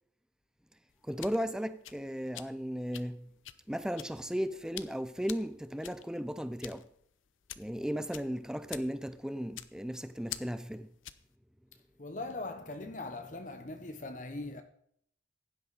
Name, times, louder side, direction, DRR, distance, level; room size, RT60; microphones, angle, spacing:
sound 1, 0.9-11.3, left 12 dB, 90° left, 0.7 m, -48 dB
voice 1, 1.0-3.3 3.7-6.9 7.6-10.9, equal, 5° right, 0.5 m, -35 dB
voice 2, 12.0-14.6, left 2 dB, 40° left, 0.8 m, -40 dB
16.0 x 11.0 x 4.1 m
head